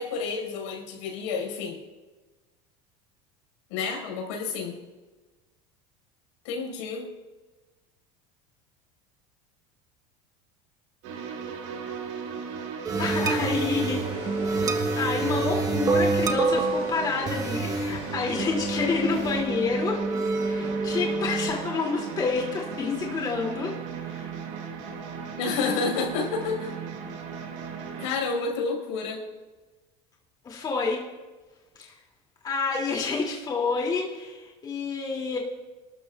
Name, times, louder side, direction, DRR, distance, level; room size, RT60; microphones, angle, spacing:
voice 1, 0.0-1.8 3.7-4.8 6.4-7.1 25.4-26.7 28.0-29.2, left 4 dB, 85° left, 1 dB, 5.0 m, -29 dB
sound 1, 11.0-28.1, right 6 dB, 80° right, 3.4 m, -37 dB
sound 2, 12.8-21.5, right 3 dB, 25° right, 1.2 m, -27 dB
voice 2, 13.0-14.3 15.0-20.0 20.4-23.7 24.0-24.3 30.4-31.0 31.8-31.9 32.4-35.4, left 4 dB, 25° left, -2 dB, 2.6 m, -28 dB
sound 3, 13.1-19.4, left 7 dB, 60° left, 2.9 m, -42 dB
28.5 x 12.5 x 2.4 m, 1.2 s
supercardioid pair, 135°, 15 cm